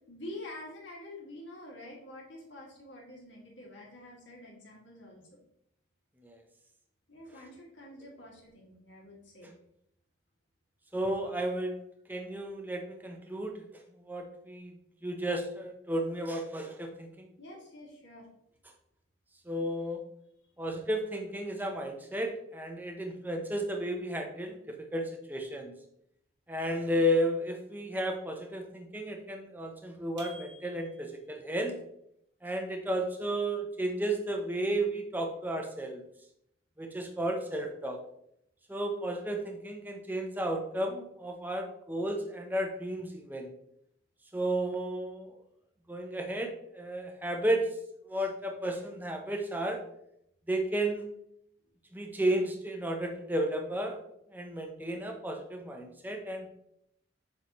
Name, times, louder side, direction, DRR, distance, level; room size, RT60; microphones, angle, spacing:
voice 1, 0.1-5.3 7.1-9.5 17.4-18.3 51.6-51.7, left 1 dB, 60° left, -3 dB, 2.2 m, -47 dB
voice 2, 10.9-11.8 12.1-14.7 15.0-17.3 19.5-20.0 20.6-25.7 26.5-31.8 32.4-36.0 36.8-38.0 38.7-43.5 44.3-45.4 45.9-46.5 46.7-47.7 48.1-49.8 50.5-51.1 51.9-54.0 54.3-56.5, right 1 dB, 10° right, 2 dB, 0.7 m, -33 dB
sound 1, 30.2-31.3, right 2 dB, 60° right, 1.4 m, -50 dB
7.1 x 4.8 x 3.0 m, 0.75 s
head